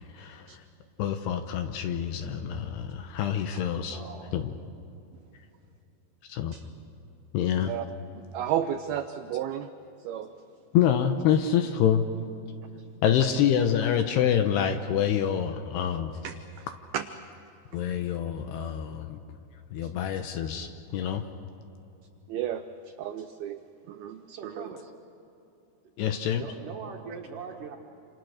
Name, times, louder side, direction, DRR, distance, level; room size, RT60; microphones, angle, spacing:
voice 1, 0.1-0.5 1.0-4.0 4.3-4.5 6.3-6.5 7.3-7.7 10.7-12.1 13.0-16.1 17.7-19.2 19.7-21.2 26.0-26.4, left 9 dB, 75° left, 7 dB, 2.7 m, -26 dB
voice 2, 3.9-4.5 24.3-24.9 26.0-27.8, right 6 dB, 60° right, 1 dB, 2.5 m, -42 dB
voice 3, 8.1-9.7 10.0-10.3 16.2-16.4 16.9-17.0 19.8-19.9 22.3-22.6 23.0-23.6 23.9-24.7, right 10 dB, 85° right, 8 dB, 2.1 m, -32 dB
28.0 x 27.5 x 6.5 m, 2.8 s
omnidirectional pair, 5.4 m